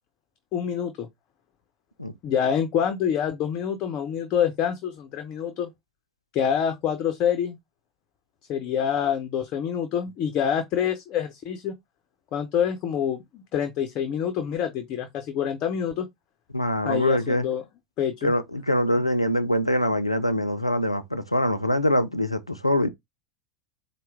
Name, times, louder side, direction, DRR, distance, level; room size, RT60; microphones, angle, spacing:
voice 1, 0.5-1.1 2.2-5.7 6.3-7.6 8.5-11.7 12.3-16.1 16.8-17.6 18.0-18.3, left 8 dB, 40° left, 0.6 m, -26 dB
voice 2, 16.5-17.5 18.2-22.9, left 1 dB, 90° left, 0.4 m, -24 dB
4.3 x 2.1 x 3.4 m
figure-of-eight pair, 85°, 3 cm